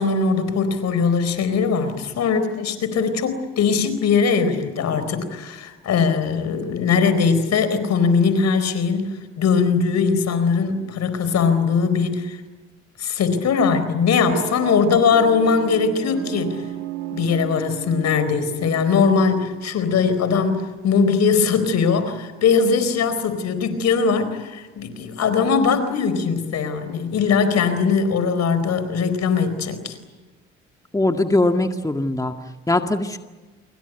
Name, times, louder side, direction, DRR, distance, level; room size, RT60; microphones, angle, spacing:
voice 1, 0.0-12.4 13.0-16.6 17.1-29.9, left 5 dB, 65° left, 11 dB, 4.4 m, -20 dB
sound 1, 14.2-19.6, right 12 dB, 80° right, 2.3 m, -33 dB
voice 2, 30.9-32.3 32.7-33.2, left 2 dB, 10° left, 5 dB, 1.9 m, -20 dB
27.5 x 23.0 x 8.2 m, 1.2 s
supercardioid pair, 60°, 29 cm